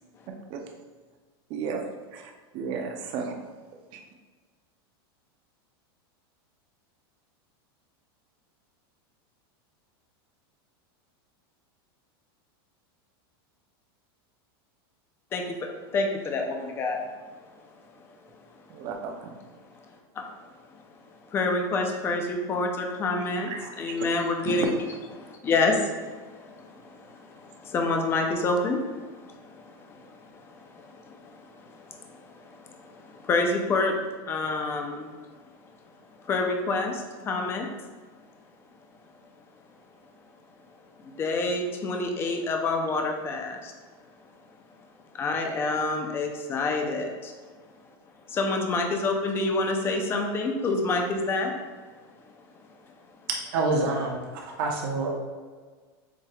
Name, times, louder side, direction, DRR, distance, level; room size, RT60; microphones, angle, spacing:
voice 1, 1.5-1.9 2.1-3.4 3.9-4.0 18.7-19.3 23.5-23.7 24.5-24.7, right 6 dB, 40° right, 3 dB, 0.6 m, -33 dB
voice 2, 15.9-17.1 20.2-20.3 21.2-23.5 23.8-24.8 25.1-34.0 34.3-35.1 36.2-37.7 41.0-43.7 45.1-47.3 48.3-51.5, left 3 dB, 20° left, 3 dB, 0.5 m, -28 dB
voice 3, 53.5-55.1, right 3 dB, 60° right, -1 dB, 0.9 m, -27 dB
7.3 x 3.1 x 2.3 m, 1.4 s
supercardioid pair, 160°, 13 cm